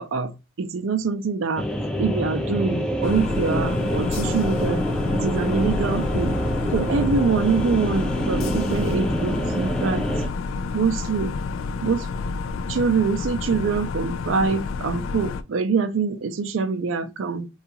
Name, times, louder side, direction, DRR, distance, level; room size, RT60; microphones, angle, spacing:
voice 1, 0.0-1.7 2.0-4.8 5.1-6.4 6.7-10.1 10.7-11.3 11.8-12.1 12.7-17.5, right 5 dB, 70° right, 0.4 m, -24 dB
sound 1, 1.6-10.3, equal, 5° left, 0.5 m, -26 dB
sound 2, 3.0-15.4, left 4 dB, 80° left, 0.3 m, -30 dB
3.6 x 2.3 x 2.8 m
head